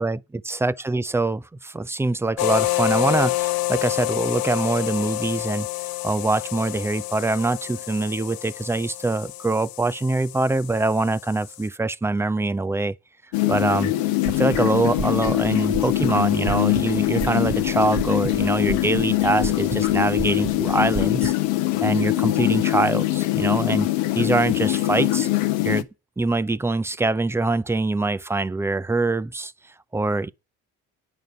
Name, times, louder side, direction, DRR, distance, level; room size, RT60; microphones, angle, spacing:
voice 1, 0.5-5.7 6.0-13.0 13.5-13.9 14.3-21.3 21.8-23.9 24.2-25.3 25.6-25.9 26.2-29.5 29.9-30.3, right 2 dB, 5° right, 0.4 m, -24 dB
sound 1, 2.4-11.7, left 19 dB, 55° left, 0.5 m, -28 dB
sound 2, 13.3-25.8, left 17 dB, 80° left, 1.0 m, -23 dB
sound 3, 14.3-21.3, right 6 dB, 30° right, 0.8 m, -34 dB
9.0 x 5.5 x 7.8 m
hypercardioid pair, 60°, 43 cm